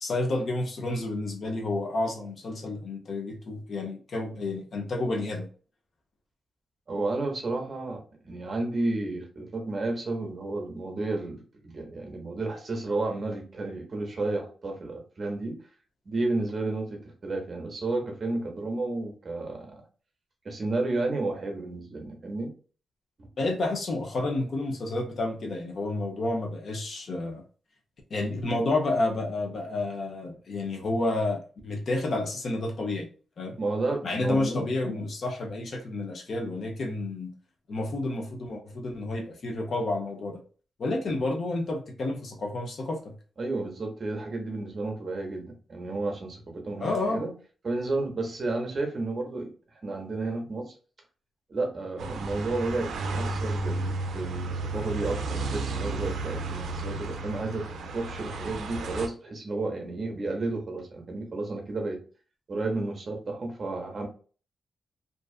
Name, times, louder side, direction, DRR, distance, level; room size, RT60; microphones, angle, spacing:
voice 1, 0.0-5.5 23.4-27.4 28.1-33.1 33.4-33.6 34.0-37.3 37.7-40.4 40.8-43.1 46.8-47.3, left 2 dB, 50° left, 2 dB, 0.5 m, -30 dB
voice 2, 6.9-15.6 16.1-19.8 20.4-22.5 33.6-34.5 43.4-47.3 47.6-49.5 49.8-50.7 51.5-57.7 57.9-62.0 62.5-64.1, right 2 dB, 35° right, 2 dB, 0.7 m, -32 dB
sound 1, 52.0-59.1, right 2 dB, 80° right, 0.4 m, -33 dB
2.5 x 2.3 x 2.3 m, 0.39 s
wide cardioid pair, 145°, 0 cm